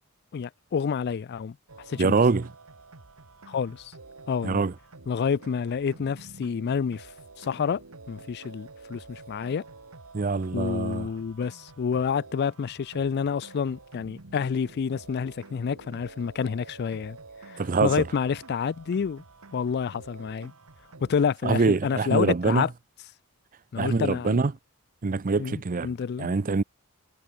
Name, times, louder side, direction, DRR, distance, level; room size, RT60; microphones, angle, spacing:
voice 1, 0.3-1.6 1.9-2.2 3.5-3.9 4.3-4.6 5.1-7.1 7.4-7.8 8.1-9.6 10.5-17.2 17.4-19.2 19.5-20.5 21.0-22.7 23.7-24.4 25.4-26.3, left 6 dB, 45° left, 0.3 m, -28 dB
sound 1, 1.7-21.2, right 3 dB, 70° right, 1.8 m, -49 dB
voice 2, 2.0-2.5 4.4-4.7 10.1-11.1 17.6-18.0 21.4-22.7 23.8-24.5 25.0-25.9 26.2-26.6, right 4 dB, 40° right, 0.5 m, -24 dB
head